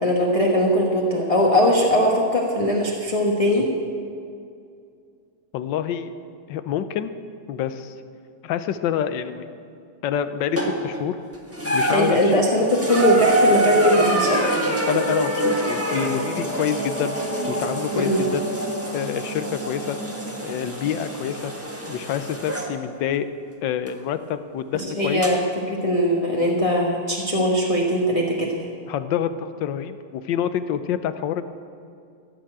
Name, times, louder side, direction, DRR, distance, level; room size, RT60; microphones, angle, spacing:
voice 1, 0.0-3.7 11.9-14.4 17.9-18.2 24.7-25.4 25.7-28.5, equal, 25° left, -2 dB, 1.0 m, -20 dB
voice 2, 5.5-6.1 6.5-7.1 7.5-7.9 8.4-9.5 10.0-11.2 11.7-12.4 14.9-17.2 17.5-18.5 18.9-20.0 20.4-21.5 21.9-23.3 23.6-25.3 28.9-31.4, left 9 dB, 85° left, 11 dB, 1.4 m, -27 dB
sound 1, 10.6-11.0 11.5-22.7 23.9-24.0 25.2-25.3, right 1 dB, 10° right, 1.3 m, -25 dB
14.0 x 6.9 x 8.7 m, 2.4 s
omnidirectional pair, 2.0 m